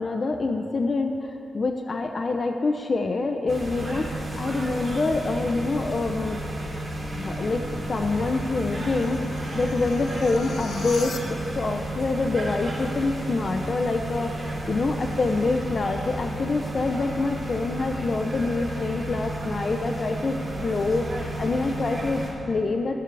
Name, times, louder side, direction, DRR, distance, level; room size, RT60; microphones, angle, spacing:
voice 1, 0.0-6.4 7.2-7.6 7.9-9.2 9.5-11.2 11.5-14.3 14.7-23.0, left 3 dB, 40° left, 5 dB, 0.7 m, -26 dB
sound 1, 3.5-22.3, right 1 dB, 25° right, 3.6 m, -32 dB
sound 2, 6.7-11.7, left 4 dB, 65° left, 0.9 m, -41 dB
16.0 x 13.5 x 3.4 m, 2.9 s
wide cardioid pair, 125°, 0 cm